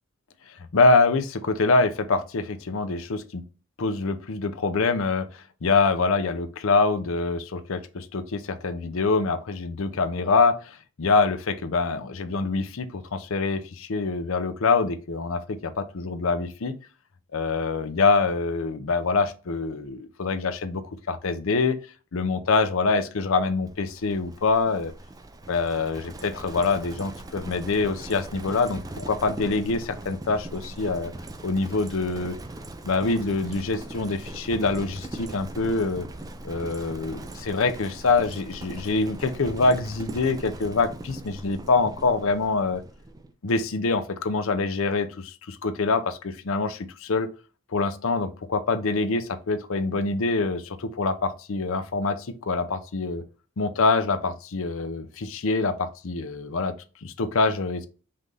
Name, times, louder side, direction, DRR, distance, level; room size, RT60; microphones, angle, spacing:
voice 1, 0.7-3.4 3.8-16.7 17.3-20.8 21.1-21.8 22.1-24.9 25.5-31.1 31.4-32.4 32.8-36.1 36.4-42.8 43.4-47.3 47.7-53.2 53.6-56.7 57.0-57.9, left 3 dB, 60° left, 10 dB, 0.6 m, -25 dB
Livestock farm animals working animals, 23.7-43.3, right 2 dB, 15° right, 0.3 m, -40 dB
5.5 x 2.6 x 3.2 m, 0.34 s
head